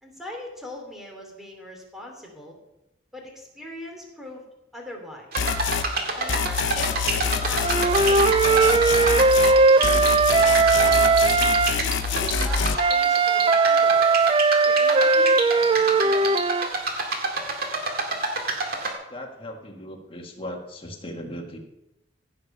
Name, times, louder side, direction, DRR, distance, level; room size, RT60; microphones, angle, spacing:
voice 1, 0.0-2.6 3.1-4.4 4.7-5.6 6.1-7.0 7.4-9.9 10.6-14.1 14.6-16.4, left 1 dB, ahead, 1 dB, 2.7 m, -41 dB
sound 1, 5.3-18.9, right 3 dB, 50° right, 2.1 m, -28 dB
sound 2, 5.4-5.9 6.3-9.6 9.8-12.8, left 7 dB, 75° left, 0.7 m, -26 dB
Wind instrument woodwind instrument, 7.6-11.8 12.8-16.7, right 4 dB, 25° right, 0.4 m, -19 dB
voice 2, 19.1-21.6, equal, 30° left, 2 dB, 1.7 m, -37 dB
16.0 x 6.8 x 5.4 m, 0.90 s
head